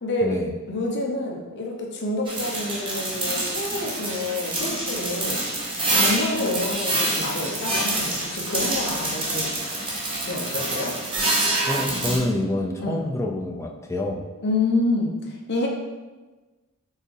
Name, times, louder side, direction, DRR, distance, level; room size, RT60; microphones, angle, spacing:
voice 1, 0.0-0.4 0.7-5.4 5.9-9.5 10.2-10.9 12.8-13.0 14.4-15.7, left 2 dB, 50° left, 0 dB, 0.8 m, -27 dB
sound 1, 2.3-12.2, right 2 dB, 20° right, 0.9 m, -26 dB
voice 2, 11.6-14.2, left 1 dB, 15° left, 1 dB, 0.4 m, -27 dB
4.5 x 3.5 x 3.3 m, 1.2 s
head